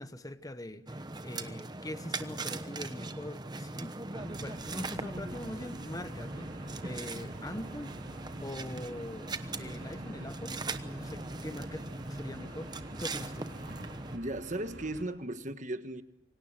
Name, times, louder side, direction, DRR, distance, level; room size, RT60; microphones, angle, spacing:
voice 1, 0.0-8.0 8.4-9.3 9.6-11.8 12.1-13.5, left 1 dB, 15° left, 11 dB, 1.1 m, -43 dB
sound 1, 0.9-14.2, right 2 dB, 20° right, 1.0 m, -40 dB
sound 2, 4.2-15.0, right 1 dB, 60° right, 4.6 m, -48 dB
voice 2, 14.1-16.0, right 1 dB, 35° right, 9 dB, 1.5 m, -36 dB
27.5 x 25.0 x 7.6 m, 0.80 s
head